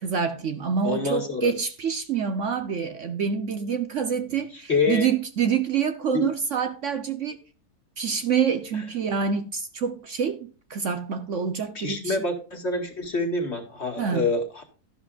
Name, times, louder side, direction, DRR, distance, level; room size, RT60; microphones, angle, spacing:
voice 1, 0.0-7.4 8.0-12.2 14.0-14.3, right 6 dB, 55° right, 1.1 m, -27 dB
voice 2, 0.8-1.5 4.7-5.1 6.1-6.2 11.7-14.6, left 3 dB, 45° left, 2.3 m, -26 dB
12.5 x 11.0 x 2.5 m
omnidirectional pair, 1.7 m